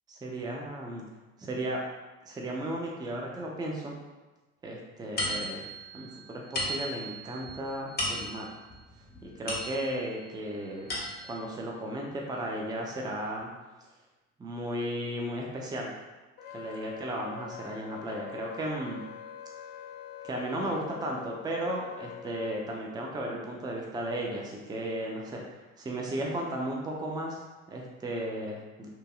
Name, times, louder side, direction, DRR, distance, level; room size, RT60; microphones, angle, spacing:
voice 1, 0.2-1.0 1.4-1.8 2.3-4.0 4.6-5.7 5.9-8.5 9.2-10.9 11.2-13.5 14.4-15.9 16.5-19.0 20.2-28.9, right 1 dB, 10° right, -1 dB, 0.4 m, -35 dB
sound 1, 5.2-10.2 10.6-11.5, left 1 dB, 20° left, 0.9 m, -36 dB
Wind instrument woodwind instrument, 16.4-22.6, left 9 dB, 50° left, 0.5 m, -44 dB
2.8 x 2.6 x 2.3 m, 1.2 s
hypercardioid pair, 60°, 43 cm